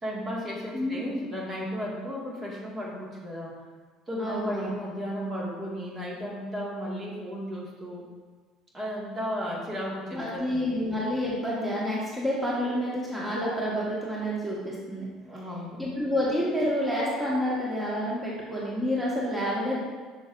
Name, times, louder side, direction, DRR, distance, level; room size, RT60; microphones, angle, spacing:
voice 1, 0.0-3.5 4.1-8.1 8.7-10.8 15.3-15.8, equal, 30° right, -4 dB, 2.0 m, -34 dB
voice 2, 0.7-1.2 4.2-4.7 10.1-15.1 15.8-19.8, equal, 10° right, -6 dB, 1.7 m, -29 dB
6.8 x 6.6 x 2.6 m, 1.4 s
supercardioid pair, 90°, 0 cm